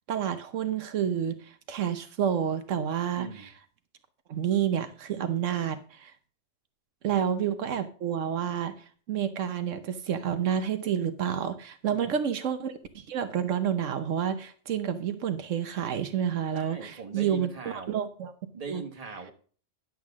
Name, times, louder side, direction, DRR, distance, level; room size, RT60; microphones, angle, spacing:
voice 1, 0.1-3.3 4.3-6.1 7.0-17.5 17.9-18.3 18.7-18.8, right 9 dB, 85° right, 9 dB, 1.2 m, -29 dB
voice 2, 3.1-3.5 7.1-7.2 11.9-12.2 16.5-18.0 18.5-19.3, right 4 dB, 30° right, 3 dB, 1.6 m, -40 dB
10.5 x 7.5 x 3.6 m, 0.41 s
omnidirectional pair, 1.3 m